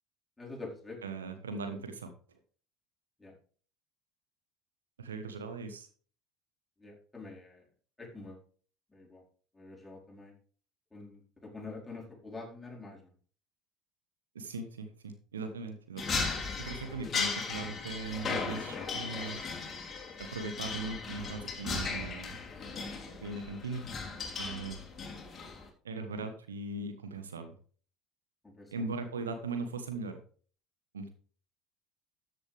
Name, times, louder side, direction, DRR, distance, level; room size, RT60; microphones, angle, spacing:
voice 1, 0.4-1.0 3.2-3.3 6.8-7.6 8.0-8.4 8.9-9.2 9.5-10.3 10.9-13.0 19.1-19.3 28.4-28.7, left 3 dB, 10° left, -2 dB, 4.8 m, -46 dB
voice 2, 1.0-2.1 5.0-5.9 14.3-16.3 16.6-19.4 20.2-22.4 23.2-23.9 24.4-24.8 25.8-27.6 28.7-30.2 30.9-31.1, right 3 dB, 80° right, 8 dB, 1.3 m, -39 dB
sound 1, 16.0-25.7, left 4 dB, 30° left, 3.3 m, -37 dB
13.5 x 8.2 x 3.5 m, 0.43 s
figure-of-eight pair, 65°, 0 cm